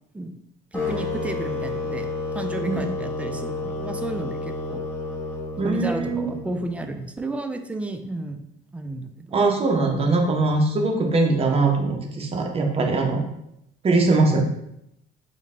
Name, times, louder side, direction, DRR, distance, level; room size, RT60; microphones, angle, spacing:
sound 1, 0.7-6.8, left 3 dB, 10° left, 1.1 m, -30 dB
voice 1, 0.7-2.1 2.3-4.8 5.6-8.5 8.7-9.4, right 2 dB, 10° right, 6 dB, 0.3 m, -32 dB
voice 2, 5.6-6.3 9.3-13.2 13.8-14.4, right 3 dB, 35° right, 3 dB, 0.7 m, -21 dB
3.7 x 2.1 x 3.6 m, 0.80 s
cardioid pair, 110°, 17 cm